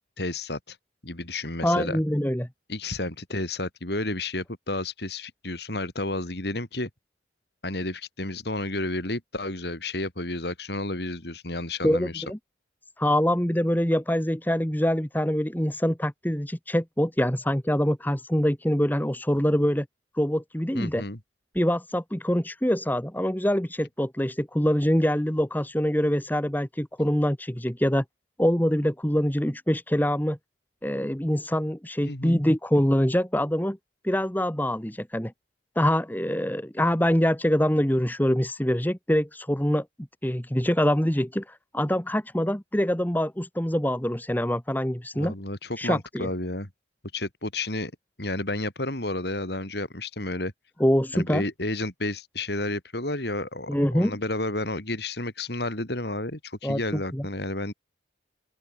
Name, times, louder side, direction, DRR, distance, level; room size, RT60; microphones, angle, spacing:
voice 1, 0.2-0.8 1.0-2.0 2.7-6.9 7.6-12.2 20.7-21.2 32.0-32.4 45.1-46.7 47.1-47.9 48.2-50.5 51.1-57.7, left 2 dB, 55° left, 3.9 m, -31 dB
voice 2, 1.6-2.5 11.8-12.4 13.0-19.8 20.1-21.0 21.5-28.0 28.4-30.4 30.8-33.8 34.0-35.3 35.7-39.8 40.2-45.3 45.8-46.3 50.8-51.4 53.7-54.2 56.6-56.8 57.1-57.3, equal, 10° left, 1.4 m, -24 dB
open air
head